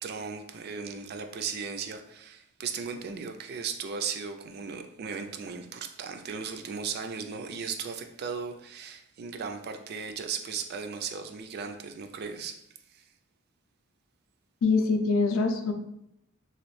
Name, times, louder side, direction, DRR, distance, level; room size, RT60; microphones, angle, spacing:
voice 1, 0.0-12.6 12.9-13.1, right 6 dB, 50° right, 7 dB, 0.3 m, -36 dB
voice 2, 14.6-15.7, left 4 dB, 65° left, 5 dB, 0.4 m, -24 dB
3.0 x 2.4 x 3.1 m, 0.79 s
head